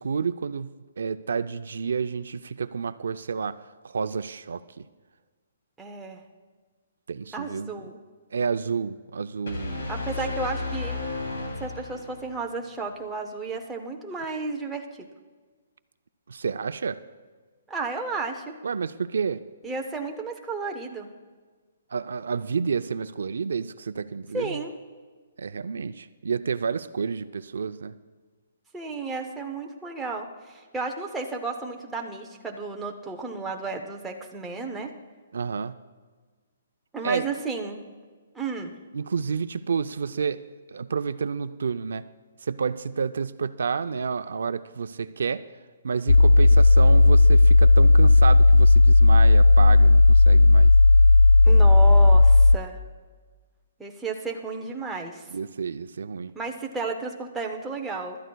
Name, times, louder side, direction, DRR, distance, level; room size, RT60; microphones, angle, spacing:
voice 1, 0.0-3.6 3.8-4.9 7.1-7.7 8.3-9.9 16.3-17.0 18.6-19.4 21.9-24.6 25.4-27.9 35.3-35.7 37.0-37.2 38.9-40.4 40.7-42.0 42.4-45.4 45.8-50.7 55.3-56.3, right 5 dB, 70° right, 12 dB, 0.4 m, -29 dB
voice 2, 5.8-6.2 7.3-8.0 9.9-11.0 11.6-15.1 17.7-18.6 19.6-21.1 24.3-24.7 28.7-34.9 36.9-37.8 38.3-38.7 51.4-52.8 53.8-55.3 56.3-58.2, right 3 dB, 5° right, 0 dB, 0.5 m, -33 dB
sound 1, 9.5-12.4, left 3 dB, 70° left, 2.8 m, -33 dB
sound 2, 46.1-52.6, left 2 dB, 90° left, 0.4 m, -14 dB
25.0 x 12.5 x 2.3 m, 1.4 s
hypercardioid pair, 180°, 0 cm